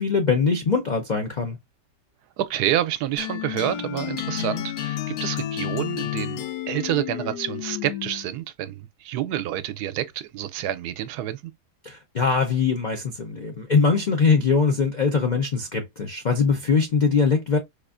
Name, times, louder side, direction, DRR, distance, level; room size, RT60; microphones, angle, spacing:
voice 1, 0.0-1.6 11.8-17.6, left 5 dB, 65° left, 0.4 m, -22 dB
voice 2, 2.4-11.5, right 12 dB, 80° right, 1.1 m, -28 dB
sound 1, 3.2-8.3, left 12 dB, 80° left, 1.1 m, -31 dB
4.6 x 2.5 x 2.4 m
omnidirectional pair, 1.7 m